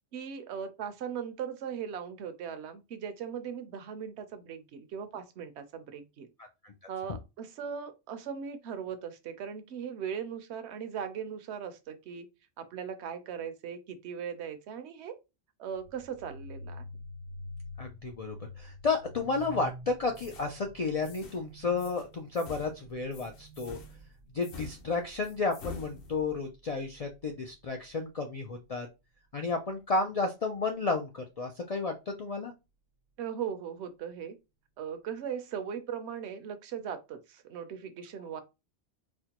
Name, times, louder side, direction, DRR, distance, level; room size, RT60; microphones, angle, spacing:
voice 1, 0.1-6.3 6.9-12.3 12.6-15.2 15.6-16.9 33.2-34.4 34.8-38.4, right 7 dB, 65° right, 0.9 m, -39 dB
voice 2, 6.4-6.7 17.8-23.8 24.3-28.9 29.3-32.5, left 3 dB, 75° left, 0.3 m, -32 dB
sound 1, 15.7-27.3, left 1 dB, 90° right, 1.0 m, -48 dB
sound 2, 19.3-19.7 20.2-20.5 21.0-21.4 21.8-22.1 22.3-26.5, left 5 dB, 55° left, 0.8 m, -48 dB
4.3 x 2.1 x 2.8 m
omnidirectional pair, 1.3 m